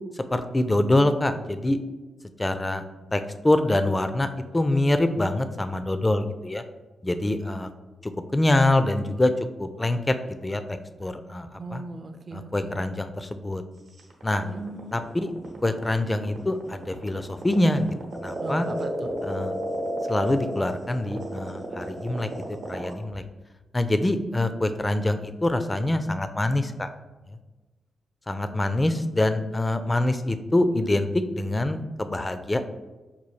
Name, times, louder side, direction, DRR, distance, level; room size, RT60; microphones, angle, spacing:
voice 1, 0.3-1.8 2.4-2.8 3.1-4.3 4.5-6.6 7.0-7.7 8.0-9.3 9.6-10.2 10.4-11.8 12.3-13.6 14.2-14.5 14.9-15.3 15.6-17.9 18.2-18.7 19.3-19.5 20.1-23.2 23.7-26.9 28.3-32.6, left 1 dB, 20° left, 9 dB, 0.3 m, -25 dB
voice 2, 11.6-12.8 14.4-14.9 18.4-19.1, right 3 dB, 50° right, 7 dB, 0.4 m, -38 dB
sound 1, 14.0-22.9, right 1 dB, 70° right, 0.8 m, -32 dB
5.5 x 2.3 x 3.1 m, 1.2 s
cardioid pair, 75°, 0 cm